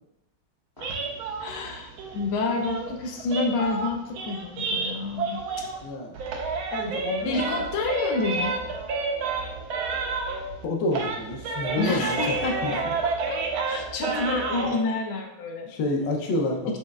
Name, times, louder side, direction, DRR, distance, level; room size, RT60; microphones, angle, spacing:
sound 1, 0.8-5.9 6.1-10.6 10.9-14.8, right 3 dB, 80° right, 1.4 m, -30 dB
voice 1, 1.4-5.6 7.2-8.6 11.8-15.7 16.7-16.8, left 3 dB, 85° left, 2 dB, 1.4 m, -29 dB
voice 2, 5.8-6.1 6.7-7.6 10.6-12.7 15.7-16.8, left 2 dB, 65° left, 1 dB, 1.3 m, -29 dB
6.3 x 3.1 x 2.3 m, 0.90 s
omnidirectional pair, 2.2 m